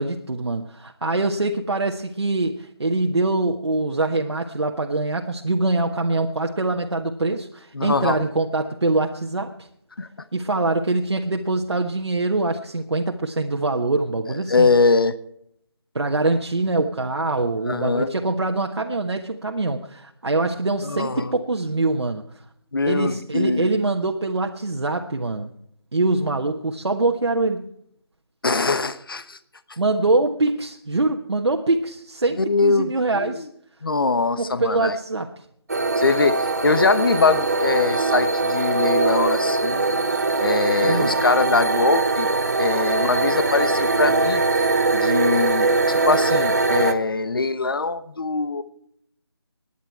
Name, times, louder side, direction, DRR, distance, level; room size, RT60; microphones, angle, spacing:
voice 1, 0.0-9.7 10.3-14.7 15.9-22.2 22.9-25.5 25.9-27.7 29.8-33.5 34.4-35.4 40.8-41.1, right 2 dB, 85° right, 2 dB, 1.3 m, -24 dB
voice 2, 7.7-8.2 10.0-10.1 14.5-15.1 17.7-18.1 20.8-21.3 22.7-23.7 28.4-29.4 32.4-33.4 33.8-35.0 36.0-39.8 40.4-42.3 42.6-44.4 44.9-48.6, left 3 dB, 55° left, 13 dB, 1.0 m, -22 dB
sound 1, 35.7-46.9, right 3 dB, 40° right, 1.0 m, -21 dB
18.0 x 10.5 x 4.6 m, 0.71 s
figure-of-eight pair, 175°, 14 cm